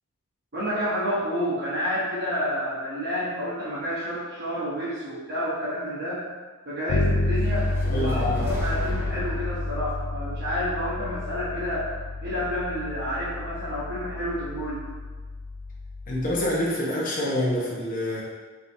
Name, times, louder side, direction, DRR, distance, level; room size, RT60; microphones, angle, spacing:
voice 1, 0.5-6.3 6.6-11.9 12.2-14.9, equal, 55° right, -10 dB, 1.0 m, -29 dB
Bass guitar, 6.9-16.6, left 2 dB, 65° left, 0.4 m, -30 dB
sound 1, 7.3-11.5, equal, 10° right, 0.6 m, -38 dB
voice 2, 7.8-8.5 16.1-18.2, left 1 dB, 40° left, -5 dB, 1.0 m, -26 dB
5.3 x 3.0 x 2.7 m, 1.4 s
head